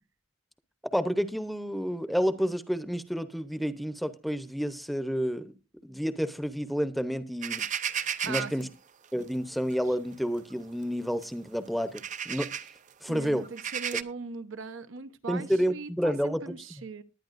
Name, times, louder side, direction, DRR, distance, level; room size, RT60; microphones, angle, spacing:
voice 1, 0.9-5.6 5.8-7.7 8.2-8.7 9.1-12.5 13.0-13.5 15.3-16.6, equal, ahead, 0.8 m, -30 dB
sound 1, 7.4-8.6 9.7-9.9 10.4-10.5 11.2-11.3 11.8-12.7 13.4-14.0, right 8 dB, 40° right, 0.5 m, -33 dB
voice 2, 8.2-8.7 13.1-17.0, right 4 dB, 75° right, 1.0 m, -40 dB
20.0 x 9.9 x 2.6 m
head